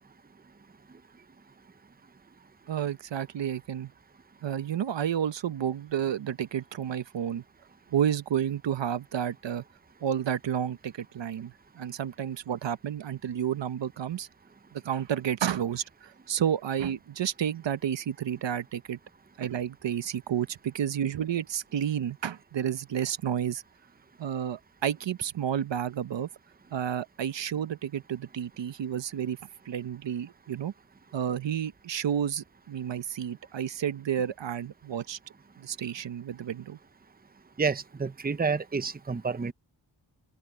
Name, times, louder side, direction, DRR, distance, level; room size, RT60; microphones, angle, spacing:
voice 1, 2.7-3.9 4.4-7.4 7.9-9.6 10.0-14.3 14.7-19.0 19.4-23.6 24.2-26.3 26.7-29.4 29.7-30.7 31.1-35.2 35.6-36.8, right 9 dB, 75° right, 0.9 m, -31 dB
voice 2, 37.6-39.5, right 5 dB, 20° right, 0.8 m, -29 dB
open air
wide cardioid pair, 105°, 44 cm